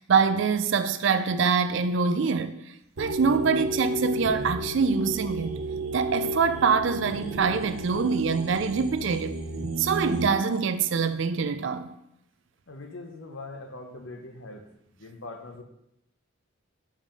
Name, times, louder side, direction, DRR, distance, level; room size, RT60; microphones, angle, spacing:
voice 1, 0.0-2.6 3.0-5.6 5.9-9.4 9.8-12.0, right 5 dB, 60° right, 0.4 m, -24 dB
sound 1, 3.0-10.3, right 1 dB, 85° right, 0.8 m, -33 dB
voice 2, 12.7-14.6 15.0-15.6, left 2 dB, 65° left, 0.9 m, -41 dB
5.6 x 5.0 x 5.1 m
head